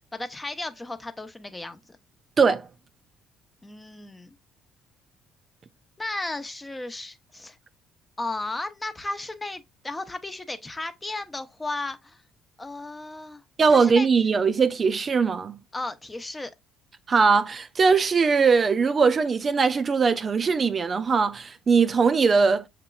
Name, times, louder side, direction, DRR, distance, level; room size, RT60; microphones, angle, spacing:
voice 1, 0.1-1.8 3.6-4.3 6.0-7.6 8.2-12.2 12.6-13.4 13.7-14.1 15.7-16.5, left 2 dB, 20° left, 0.7 m, -34 dB
voice 2, 2.4-2.7 13.6-15.6 17.1-22.7, right 5 dB, 40° right, 0.4 m, -20 dB
6.5 x 2.9 x 2.3 m
hypercardioid pair, 60°, 0 cm